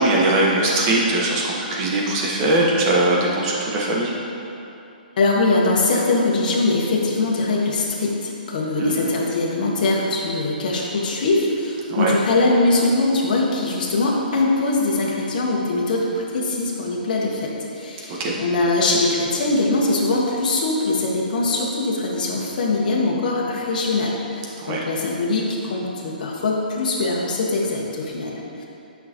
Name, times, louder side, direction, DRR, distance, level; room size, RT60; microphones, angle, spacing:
voice 1, 0.0-4.1 8.8-9.0 11.9-12.1 18.2-18.4 24.6-24.8, right 2 dB, 35° right, -3 dB, 1.3 m, -20 dB
voice 2, 5.2-28.6, left 2 dB, 55° left, -3 dB, 1.3 m, -22 dB
9.3 x 5.7 x 3.0 m, 2.8 s
hypercardioid pair, 145°, 5 cm